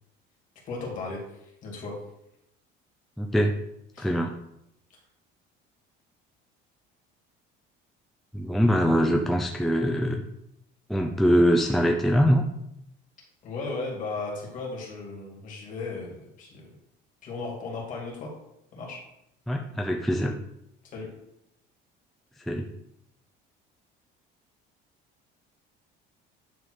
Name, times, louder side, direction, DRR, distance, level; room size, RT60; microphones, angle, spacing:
voice 1, 0.7-2.0 3.9-4.2 13.4-16.6 17.2-18.3 18.7-19.0 20.8-21.1, left 3 dB, 40° left, -1 dB, 2.4 m, -36 dB
voice 2, 3.2-3.5 4.0-4.3 8.3-10.2 10.9-12.5 19.5-20.3 22.5-22.7, equal, ahead, 2 dB, 0.4 m, -23 dB
9.5 x 3.7 x 4.7 m, 0.81 s
cardioid pair, 165°, 21 cm